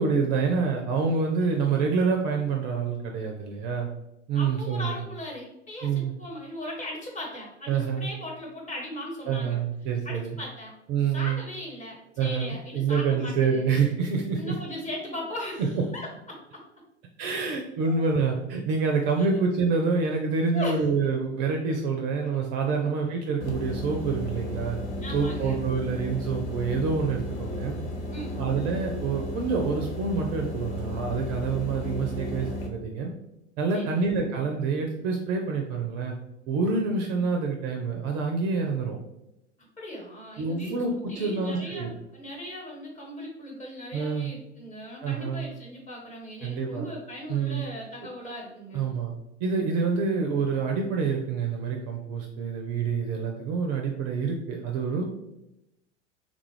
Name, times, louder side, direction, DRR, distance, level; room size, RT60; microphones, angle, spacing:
voice 1, 0.0-3.9 4.3-5.0 5.8-6.1 7.7-8.1 9.3-10.4 10.9-11.4 12.2-14.6 17.2-24.8 25.1-27.8 28.4-33.1 33.6-36.2 36.5-39.0 40.4-41.9 43.9-44.3 45.0-45.4 46.4-46.9 47.3-47.6 48.7-49.1 49.4-55.0, right 5 dB, 35° right, 2 dB, 0.4 m, -27 dB
voice 2, 4.3-9.6 10.0-10.7 11.1-13.6 14.3-16.6 17.9-18.0 19.3-19.4 20.5-20.8 22.8-22.9 25.0-25.6 28.1-28.4 33.7-34.0 39.8-40.7 41.1-48.8, left 1 dB, 20° left, -2 dB, 1.1 m, -38 dB
sound 1, 23.4-32.7, left 1 dB, 60° left, 0.9 m, -34 dB
3.7 x 2.3 x 3.1 m, 0.89 s
figure-of-eight pair, 85°, 36 cm